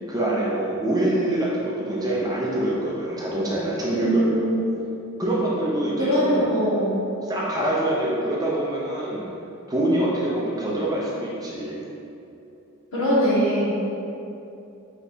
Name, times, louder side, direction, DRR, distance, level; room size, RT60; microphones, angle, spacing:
voice 1, 0.1-4.6 5.2-6.4 7.3-9.3 9.7-11.8, right 1 dB, 15° right, -5 dB, 0.5 m, -25 dB
voice 2, 3.9-4.7 6.0-7.0 12.9-13.7, equal, 65° left, -9 dB, 1.4 m, -22 dB
4.6 x 3.2 x 2.7 m, 2.7 s
head